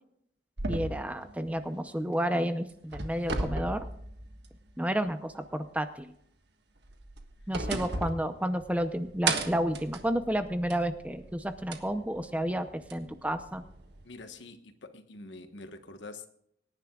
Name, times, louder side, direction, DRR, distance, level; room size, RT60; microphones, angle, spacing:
sound 1, 0.6-2.3 2.7-4.7 5.1-5.2 6.8-8.9 9.3-10.9 11.7-11.8 12.9-13.0, right 3 dB, 60° right, 1.5 m, -35 dB
voice 1, 0.7-3.9 4.8-6.1 7.5-13.6, equal, 5° right, 9 dB, 0.7 m, -31 dB
sound 2, 8.5-14.0, right 1 dB, 45° right, 3.7 m, -54 dB
voice 2, 14.0-16.3, left 3 dB, 65° left, 8 dB, 1.3 m, -46 dB
25.0 x 10.5 x 2.4 m, 0.72 s
head